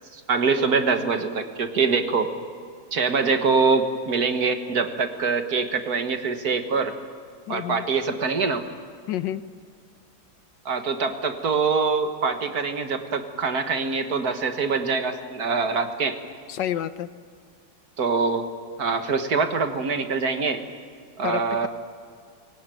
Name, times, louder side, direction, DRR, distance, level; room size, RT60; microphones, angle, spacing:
voice 1, 0.1-2.3 2.9-6.9 7.5-8.6 10.7-16.2 18.0-18.4 18.8-20.6 21.2-21.7, right 4 dB, 55° right, 7 dB, 2.0 m, -24 dB
voice 2, 7.5-7.8 9.1-9.4 16.5-17.1 21.2-21.7, left 11 dB, 75° left, 13 dB, 1.5 m, -29 dB
23.5 x 18.0 x 9.2 m, 2.2 s
omnidirectional pair, 2.0 m